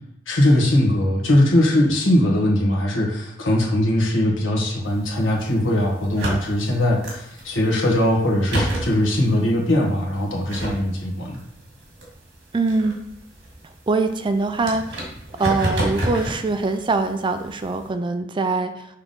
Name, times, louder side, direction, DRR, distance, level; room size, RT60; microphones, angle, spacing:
voice 1, 0.3-11.4, left 1 dB, 75° left, -1 dB, 1.5 m, -20 dB
sound 1, 4.8-17.9, right 1 dB, 65° right, 1.9 m, -32 dB
voice 2, 12.5-13.0 13.9-15.1 15.4-18.9, right 3 dB, 25° right, 8 dB, 0.4 m, -23 dB
5.8 x 3.5 x 5.4 m, 0.82 s
head